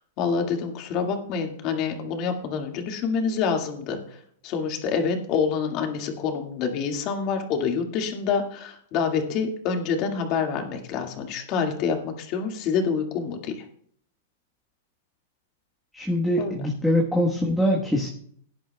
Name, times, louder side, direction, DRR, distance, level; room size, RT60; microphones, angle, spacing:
voice 1, 0.2-4.0 4.4-13.6 16.4-16.6, left 6 dB, 40° left, 3 dB, 2.0 m, -27 dB
voice 2, 15.9-18.1, equal, ahead, -2 dB, 1.3 m, -23 dB
18.5 x 10.0 x 2.3 m, 0.63 s
hypercardioid pair, 150°, 0 cm